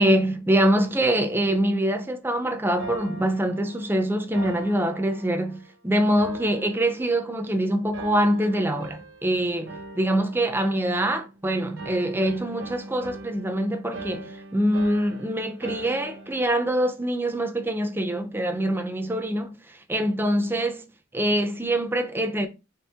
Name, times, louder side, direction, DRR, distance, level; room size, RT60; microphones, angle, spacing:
voice 1, 0.0-20.8 21.1-22.5, right 1 dB, 10° right, 0.5 m, -24 dB
sound 1, 2.8-5.7 6.2-7.5 7.9-9.3 9.7-11.4 11.8-16.5, right 2 dB, 60° right, 0.7 m, -41 dB
4.4 x 3.5 x 3.5 m
head